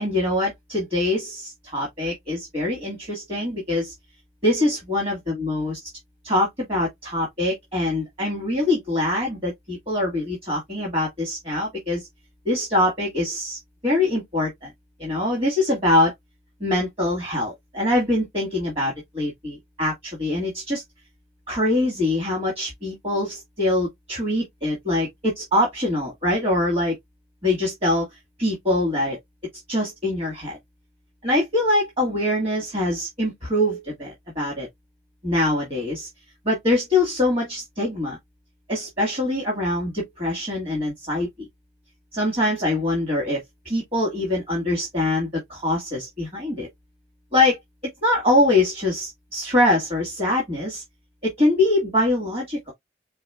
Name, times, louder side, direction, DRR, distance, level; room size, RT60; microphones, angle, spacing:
voice 1, 0.0-3.9 4.4-5.9 6.2-12.1 12.5-14.7 15.0-16.1 16.6-19.9 20.2-20.8 21.5-26.9 27.4-28.1 28.4-29.2 29.7-30.6 31.2-34.7 35.2-36.1 36.5-38.2 38.7-41.5 42.1-43.4 43.7-46.7 47.3-47.6 48.0-50.8 51.2-52.7, left 1 dB, 35° right, 1.9 m, -23 dB
4.7 x 4.0 x 2.3 m
head